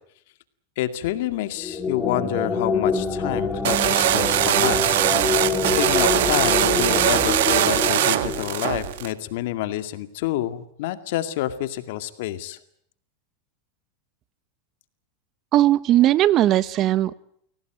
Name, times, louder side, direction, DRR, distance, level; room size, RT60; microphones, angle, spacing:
voice 1, 0.8-12.6, left 14 dB, 70° left, 10 dB, 2.2 m, -28 dB
sound 1, 1.5-9.0, left 4 dB, 15° left, 4.2 m, -26 dB
sound 2, 3.6-9.1, right 13 dB, 75° right, 1.6 m, -21 dB
voice 2, 15.5-17.1, right 13 dB, 40° right, 18 dB, 1.0 m, -18 dB
24.5 x 17.5 x 9.1 m, 0.69 s
supercardioid pair, 125°, 0 cm